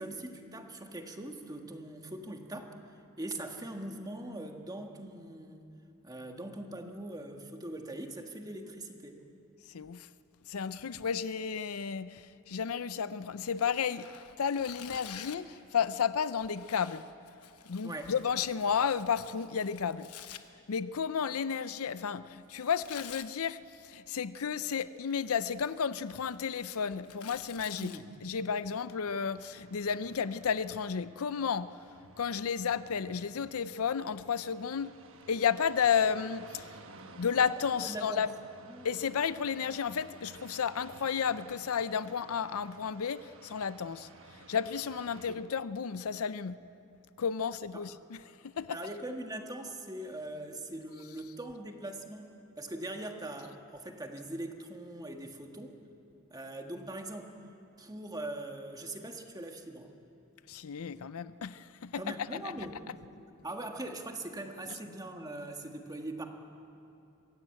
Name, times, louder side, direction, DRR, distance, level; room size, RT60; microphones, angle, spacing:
voice 1, 0.0-2.7 3.2-5.6 6.0-9.2 17.8-18.1 27.8-28.1 37.8-38.2 38.7-38.9 47.7-47.9 48.7-55.8 56.3-57.3 57.8-59.9 62.0-62.8 63.4-66.3, right 1 dB, 15° right, 1.5 m, -41 dB
voice 2, 9.7-10.1 10.5-14.1 14.4-17.0 17.7-20.1 20.7-27.9 28.2-31.8 32.2-34.9 35.3-36.7 37.2-38.3 38.8-44.1 44.5-46.6 47.2-48.2 48.6-48.8 60.5-62.4, left 7 dB, 70° left, 0.5 m, -32 dB
Tearing, 13.5-15.5 16.4-20.4 22.5-23.3 24.6-25.1 25.5-28.0, left 9 dB, 90° left, 1.0 m, -50 dB
sound 1, 29.1-45.4, right 3 dB, 60° right, 1.3 m, -55 dB
23.0 x 16.0 x 8.8 m
head